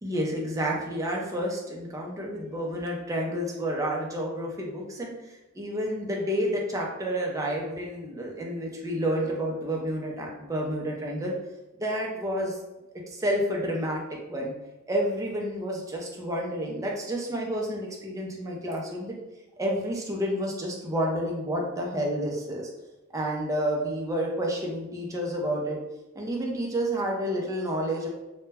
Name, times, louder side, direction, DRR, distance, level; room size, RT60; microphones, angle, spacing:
voice 1, 0.0-11.3 11.8-12.6 13.1-14.5 14.9-19.2 19.6-22.7 23.1-25.8 26.1-28.1, equal, 15° right, -1 dB, 0.4 m, -30 dB
2.1 x 2.1 x 3.3 m, 1.0 s
head